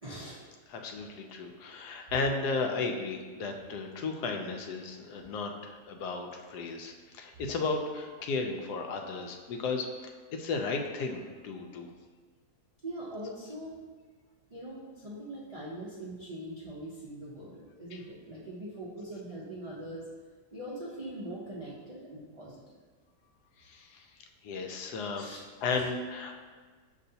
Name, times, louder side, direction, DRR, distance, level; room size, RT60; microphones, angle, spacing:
voice 1, 0.0-0.4 12.8-13.8 14.5-20.1 20.5-22.8 25.1-25.4 25.7-25.9, right 1 dB, 65° right, -7 dB, 0.3 m, -42 dB
voice 2, 0.7-11.9 17.9-18.0 23.6-24.1 24.4-25.2 25.6-26.4, left 4 dB, 85° left, 3 dB, 1.2 m, -34 dB
6.6 x 3.0 x 2.7 m, 1.4 s
omnidirectional pair, 1.7 m